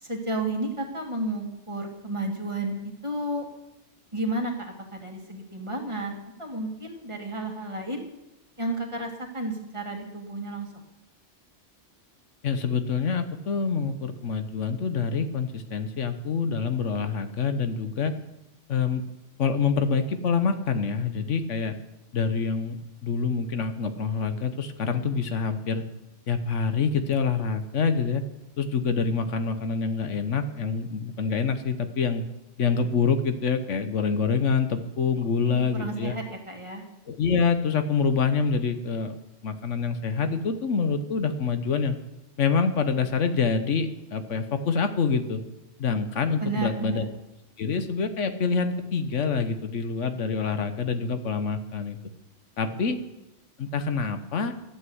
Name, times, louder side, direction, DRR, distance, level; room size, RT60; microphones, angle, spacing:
voice 1, 0.0-2.7 3.0-3.4 4.1-8.0 8.6-10.8 35.5-36.8 46.4-47.1, right 2 dB, 25° right, 1 dB, 2.2 m, -32 dB
voice 2, 12.4-18.1 18.7-19.0 19.4-21.7 22.1-22.8 23.0-25.8 26.3-28.2 28.6-32.2 32.6-36.2 37.1-39.2 39.4-42.0 42.4-45.4 45.8-47.0 47.6-52.0 52.6-53.0 53.6-54.5, left 5 dB, 90° left, 9 dB, 1.4 m, -26 dB
13.0 x 8.6 x 7.9 m, 0.93 s
omnidirectional pair, 1.2 m